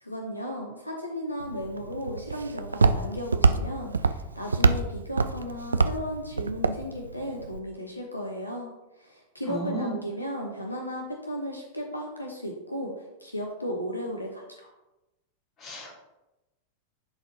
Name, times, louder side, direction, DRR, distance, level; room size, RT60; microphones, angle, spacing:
voice 1, 0.0-8.7 9.0-12.9 13.2-14.7, equal, 85° left, 1 dB, 0.9 m, -35 dB
Walk footsteps, 1.4-7.6, right 4 dB, 75° right, 0.3 m, -26 dB
voice 2, 9.5-9.9 15.6-16.0, right 1 dB, 30° left, -3 dB, 2.6 m, -33 dB
11.5 x 4.1 x 2.8 m, 0.98 s
figure-of-eight pair, 90°, 0 cm